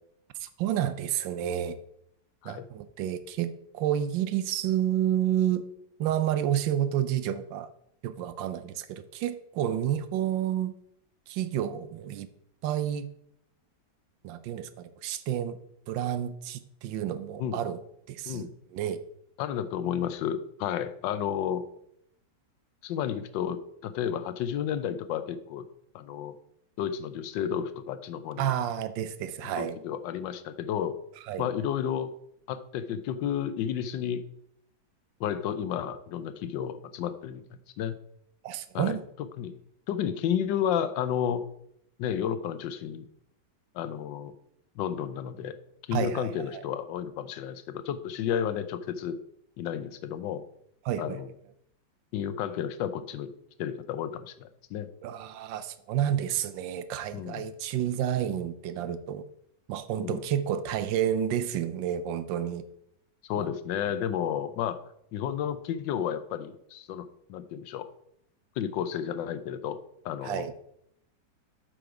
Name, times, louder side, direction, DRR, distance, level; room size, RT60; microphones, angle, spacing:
voice 1, 0.4-1.8 2.4-5.6 6.0-7.7 8.0-10.7 11.3-12.3 12.6-13.1 14.2-15.6 15.9-17.8 18.1-19.0 28.4-29.8 31.3-31.5 38.4-39.0 45.9-46.6 50.8-51.2 55.0-59.2 59.7-62.6 63.4-63.5 70.2-70.5, right 10 dB, 90° right, 13 dB, 1.4 m, -30 dB
voice 2, 19.4-21.6 22.8-25.6 25.9-26.3 26.8-28.5 29.4-31.0 31.4-32.1 32.5-34.2 35.2-38.0 38.7-39.0 39.4-39.5 39.9-41.4 42.0-43.1 43.7-44.3 44.8-45.6 45.9-49.2 49.6-50.4 51.0-51.3 52.1-53.3 53.6-54.9 57.1-57.5 60.0-60.2 63.3-64.8 65.1-67.9 68.6-69.8 70.0-70.5, left 9 dB, 80° left, 11 dB, 1.3 m, -32 dB
7.8 x 5.1 x 4.8 m, 0.75 s
omnidirectional pair, 2.0 m